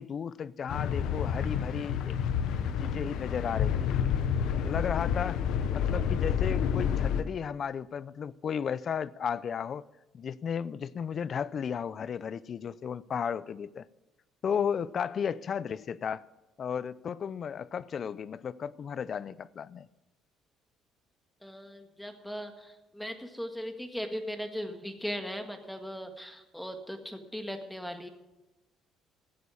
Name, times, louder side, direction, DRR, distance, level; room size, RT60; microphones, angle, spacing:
voice 1, 0.0-2.2 2.8-3.9 4.6-5.4 5.7-9.8 10.1-13.9 14.4-16.2 16.6-19.9, left 7 dB, 45° left, 0.5 m, -34 dB
sound 1, 0.7-7.2, left 8 dB, 75° left, 0.9 m, -29 dB
voice 2, 21.4-28.1, equal, 5° left, 1.7 m, -38 dB
15.5 x 8.6 x 7.0 m
cardioid pair, 115°, 0 cm